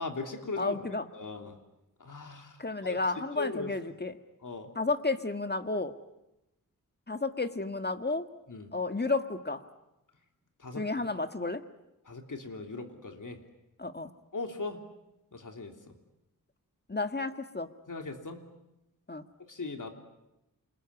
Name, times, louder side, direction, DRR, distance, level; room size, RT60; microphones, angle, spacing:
voice 1, 0.0-0.8 1.1-1.6 2.0-2.6 2.8-3.0 3.4-3.7 4.4-4.7 8.5-8.7 10.6-10.8 12.1-13.4 14.3-14.8 15.3-15.7 17.9-18.4 19.5-19.9, left 3 dB, 65° left, 5 dB, 3.3 m, -38 dB
voice 2, 0.6-1.1 2.6-4.1 4.8-5.9 7.1-8.3 8.7-9.6 10.8-11.6 13.8-14.1 16.9-17.7 19.1-19.2, left 3 dB, 30° left, 8 dB, 1.7 m, -32 dB
28.0 x 21.5 x 9.7 m, 0.92 s
wide cardioid pair, 60°, 34 cm